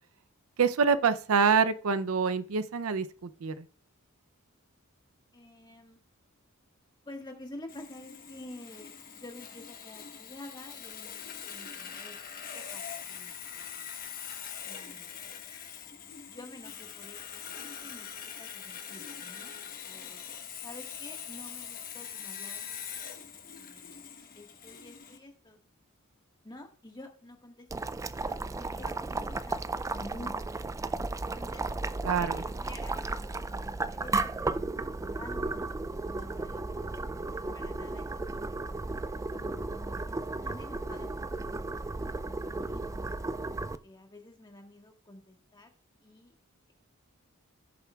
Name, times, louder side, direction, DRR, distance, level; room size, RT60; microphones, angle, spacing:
voice 1, 0.6-3.7 32.0-32.4, right 5 dB, 70° right, 0.5 m, -26 dB
voice 2, 5.3-6.0 7.0-12.2 12.5-13.9 14.6-15.3 16.3-17.2 17.5-19.5 19.9-20.3 20.6-23.1 23.5-24.1 24.3-25.6 26.4-27.7 28.2-29.6 29.9-31.6 32.2-36.9 37.3-38.8 39.3-40.2 40.4-41.5 42.0-43.4 43.8-45.7 46.0-46.3, left 1 dB, 20° left, 1.5 m, -50 dB
Sawing, 7.7-25.2, left 8 dB, 45° left, 1.1 m, -43 dB
Boiling, 27.7-43.8, right 3 dB, 15° right, 0.3 m, -34 dB
16.0 x 6.8 x 2.3 m
head